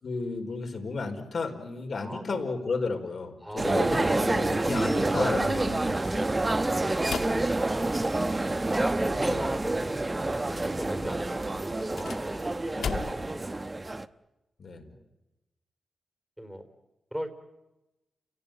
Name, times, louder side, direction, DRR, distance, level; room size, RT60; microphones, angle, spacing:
voice 1, 0.0-6.3 12.7-13.1 14.6-14.9, left 4 dB, 55° left, 4 dB, 4.8 m, -33 dB
voice 2, 2.0-2.4 3.4-4.3 6.5-7.2 8.7-12.5 12.8-13.7 14.9-15.0 16.4-16.7 17.1-17.3, equal, 5° right, 8 dB, 4.3 m, -38 dB
sound 1, 3.6-14.1, right 2 dB, 20° right, 1.0 m, -28 dB
sound 2, 7.0-8.4 11.7-13.4, left 6 dB, 80° left, 1.4 m, -37 dB
30.0 x 17.5 x 9.2 m, 0.98 s
cardioid pair, 95°, 0 cm